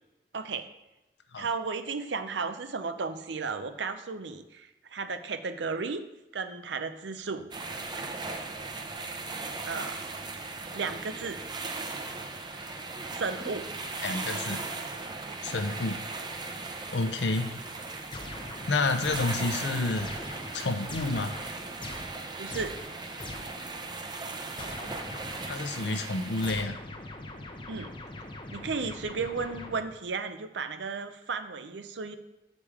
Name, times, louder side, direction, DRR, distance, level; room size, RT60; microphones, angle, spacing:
voice 1, 0.3-0.7 1.4-6.0 6.3-7.5 9.7-10.0 10.7-11.4 13.1-13.7 22.4-22.7 27.7-27.9 28.5-32.2, right 4 dB, 90° right, 9 dB, 0.6 m, -34 dB
sound 1, 7.5-26.7, right 3 dB, 25° right, 0.6 m, -38 dB
voice 2, 14.0-14.6 15.4-16.0 16.9-17.5 18.7-20.1 20.5-21.3 25.5-26.8, left 3 dB, 75° left, 8 dB, 0.7 m, -29 dB
sound 2, 18.1-23.7 24.6-25.9 26.4-30.1, left 2 dB, 30° left, 0.7 m, -43 dB
7.2 x 5.1 x 4.9 m, 0.96 s
head